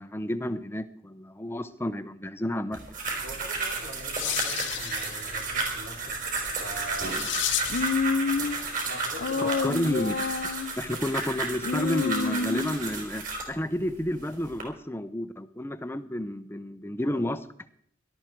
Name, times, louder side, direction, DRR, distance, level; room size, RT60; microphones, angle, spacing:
voice 1, 0.0-2.8 9.4-10.1 10.8-17.4, left 1 dB, 10° left, 12 dB, 0.7 m, -31 dB
sound 1, 2.7-13.5 14.2-14.6, right 3 dB, 45° right, 4.9 m, -33 dB
voice 2, 3.2-6.2 6.6-7.2 8.6-9.7 17.1-17.3, right 1 dB, 85° right, 2 dB, 3.8 m, -42 dB
sound 2, 3.6-8.0, left 12 dB, 85° left, 1.1 m, -34 dB
Human voice, 7.7-8.6 9.2-10.8 11.6-12.9, left 5 dB, 60° left, 0.7 m, -28 dB
18.0 x 12.5 x 4.6 m, 0.64 s
head